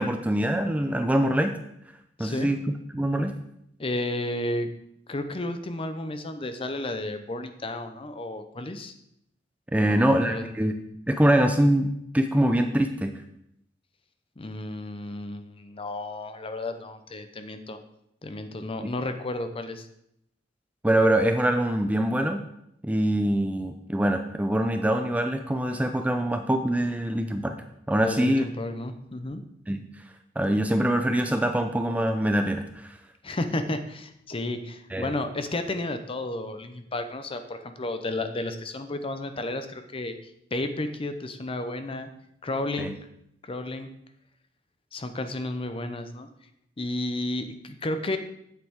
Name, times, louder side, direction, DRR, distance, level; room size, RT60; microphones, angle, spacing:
voice 1, 0.0-1.5 2.2-2.6 2.9-3.3 9.7-10.7 11.1-13.1 20.8-22.4 22.8-27.6 27.9-28.4 29.7-29.9 30.4-33.0 34.9-35.1 42.8-42.9, right 1 dB, 10° right, 6 dB, 0.4 m, -24 dB
voice 2, 2.2-2.5 3.8-4.7 5.1-8.9 9.7-10.0 10.2-10.5 14.4-17.8 18.2-19.9 28.0-29.4 33.2-42.1 42.4-43.0 43.4-43.9 44.9-46.3 46.8-48.2, left 2 dB, 30° left, 8 dB, 0.7 m, -32 dB
8.8 x 7.6 x 3.6 m, 0.76 s
head